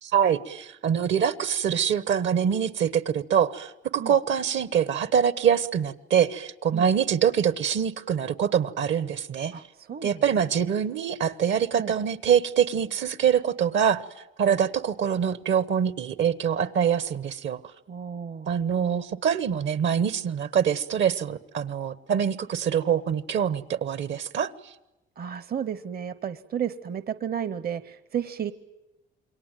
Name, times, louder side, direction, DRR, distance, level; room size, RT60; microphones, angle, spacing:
voice 1, 0.0-9.5 10.0-14.0 14.4-17.6 18.5-24.5, right 8 dB, 70° right, 1.2 m, -24 dB
voice 2, 9.5-10.2 10.6-10.7 11.8-11.9 14.4-14.6 17.9-18.5 25.2-28.5, right 8 dB, 50° right, 0.9 m, -33 dB
28.0 x 22.5 x 9.1 m
cardioid pair, 90°, 20 cm